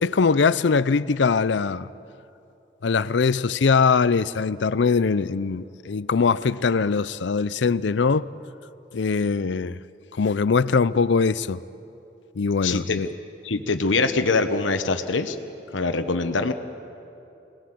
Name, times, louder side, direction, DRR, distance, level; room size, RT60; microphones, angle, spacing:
voice 1, 0.0-1.9 2.8-8.3 8.9-9.8 10.2-11.6 12.4-13.1, left 5 dB, 70° left, 0.5 m, -22 dB
voice 2, 12.6-13.0 13.4-15.4 15.7-16.5, left 3 dB, 85° left, 1.1 m, -23 dB
25.0 x 19.5 x 7.7 m
head